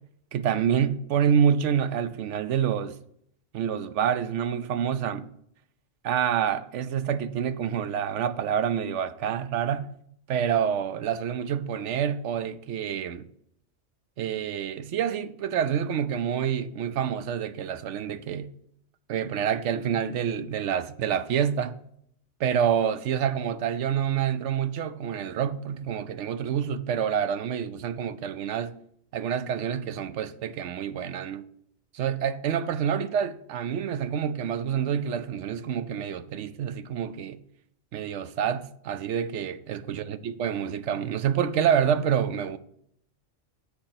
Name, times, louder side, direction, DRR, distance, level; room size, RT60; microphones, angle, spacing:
voice 1, 0.3-3.0 3.5-5.3 6.0-9.9 10.3-13.3 14.2-18.5 19.1-21.7 22.4-28.7 29.1-31.5 31.9-37.4 37.9-42.6, right 8 dB, 70° right, 0.9 m, -27 dB
8.0 x 6.6 x 5.8 m
omnidirectional pair, 1.3 m